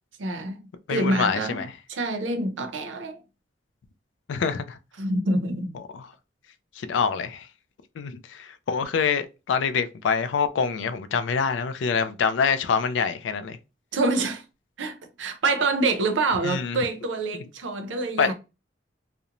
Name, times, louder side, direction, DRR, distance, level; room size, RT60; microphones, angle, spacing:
voice 1, 0.2-1.6 1.9-3.2 5.0-5.7 13.9-14.4 14.8-18.3, right 2 dB, 90° right, 0.5 m, -26 dB
voice 2, 0.9-1.7 4.3-4.8 5.7-6.1 6.8-7.5 8.0-13.6 16.4-16.8 18.2-18.3, left 6 dB, 80° left, 0.3 m, -26 dB
2.8 x 2.0 x 2.5 m
head